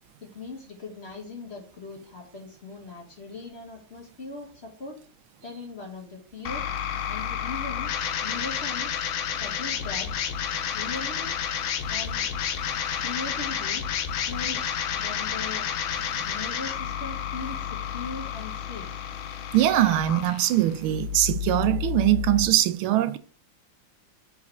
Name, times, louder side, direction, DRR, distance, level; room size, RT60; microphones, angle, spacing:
voice 1, 0.2-5.0 5.4-6.6 7.1-7.9 8.2-8.9 9.3-10.1 10.7-11.3 11.9-12.3 13.0-13.8 14.3-15.6 16.3-18.9, left 3 dB, 35° left, 1.3 m, -39 dB
sound 1, 6.4-22.5, left 8 dB, 75° left, 1.5 m, -30 dB
voice 2, 19.5-23.2, right 14 dB, 85° right, 1.4 m, -22 dB
4.7 x 4.3 x 5.8 m
omnidirectional pair, 2.3 m